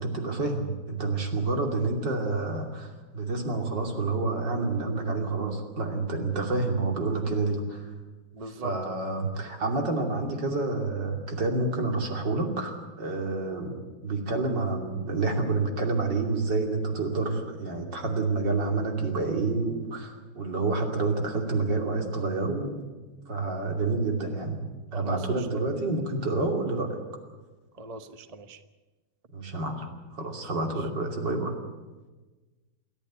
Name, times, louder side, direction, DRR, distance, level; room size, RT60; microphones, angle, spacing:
voice 1, 0.0-7.9 8.5-22.8 23.3-27.0 29.3-31.6, right 3 dB, 55° right, 3 dB, 3.4 m, -29 dB
voice 2, 8.3-9.0 24.9-25.2 25.5-25.7 27.8-28.6, right 3 dB, 40° right, 10 dB, 0.5 m, -40 dB
28.0 x 11.0 x 10.0 m, 1.2 s
omnidirectional pair, 2.3 m